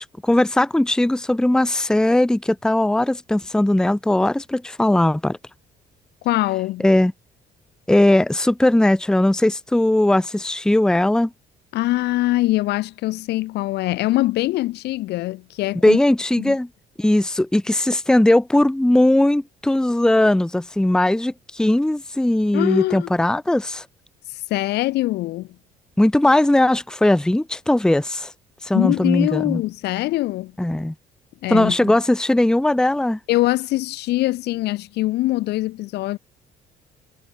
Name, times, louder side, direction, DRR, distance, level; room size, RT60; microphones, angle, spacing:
voice 1, 0.2-5.4 6.8-7.1 7.9-11.3 15.8-16.7 17.0-23.8 26.0-28.3 28.6-29.6 30.6-30.9 31.5-33.2, left 1 dB, 5° left, 0.8 m, -18 dB
voice 2, 6.2-6.9 11.7-16.0 16.4-16.6 22.5-23.1 24.3-25.5 28.7-30.5 31.4-32.0 33.3-36.2, left 17 dB, 80° left, 2.2 m, -23 dB
cardioid pair, 110°, 17 cm